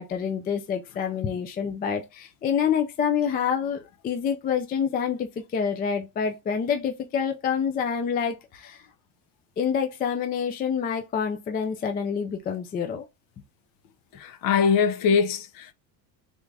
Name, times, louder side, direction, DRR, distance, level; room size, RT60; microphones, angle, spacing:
voice 1, 0.0-8.8 9.6-13.0, left 7 dB, 20° left, 0.3 m, -27 dB
voice 2, 14.1-15.7, left 6 dB, 50° left, 0.7 m, -22 dB
3.5 x 2.5 x 3.2 m
cardioid pair, 130°, 45 cm